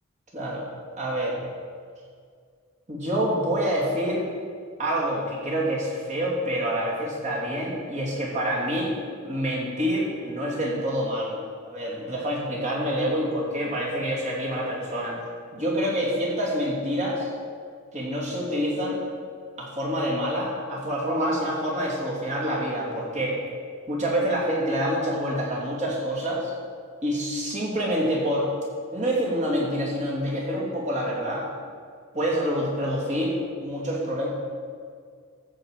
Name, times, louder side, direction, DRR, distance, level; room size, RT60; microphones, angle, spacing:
voice 1, 0.3-0.7 1.0-1.4 2.9-4.2 4.8-8.9 9.2-15.2 15.5-17.3 17.9-19.0 19.6-23.4 23.9-26.5 27.0-28.5 28.9-31.5 32.1-34.3, equal, 35° right, -4 dB, 2.9 m, -27 dB
14.0 x 5.1 x 7.4 m, 2.1 s
head